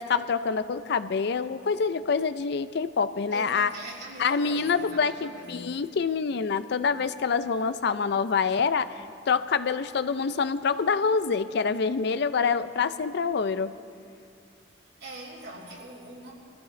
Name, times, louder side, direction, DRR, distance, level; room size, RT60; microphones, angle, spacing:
voice 1, 0.0-3.7 4.2-13.7, left 5 dB, 65° left, 13 dB, 0.5 m, -26 dB
voice 2, 3.3-5.7 15.0-16.3, right 1 dB, 65° right, -5 dB, 3.5 m, -42 dB
24.0 x 14.5 x 3.2 m, 2.3 s
head